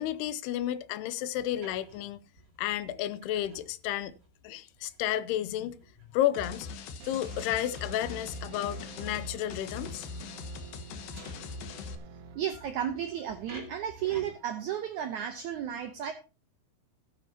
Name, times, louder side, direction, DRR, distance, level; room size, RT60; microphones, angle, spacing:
voice 1, 0.0-2.2 2.6-4.1 4.4-5.8 6.1-6.7 7.1-10.1, left 12 dB, 85° left, 2.8 m, -32 dB
sound 1, 1.5-12.1 12.5-14.3, right 2 dB, 30° right, 2.8 m, -53 dB
sound 2, 6.3-12.0, left 4 dB, 70° left, 2.7 m, -41 dB
sound 3, 7.0-12.9, right 5 dB, 65° right, 2.2 m, -49 dB
voice 2, 12.3-16.1, right 9 dB, 85° right, 1.7 m, -33 dB
16.5 x 9.7 x 2.8 m
omnidirectional pair, 4.6 m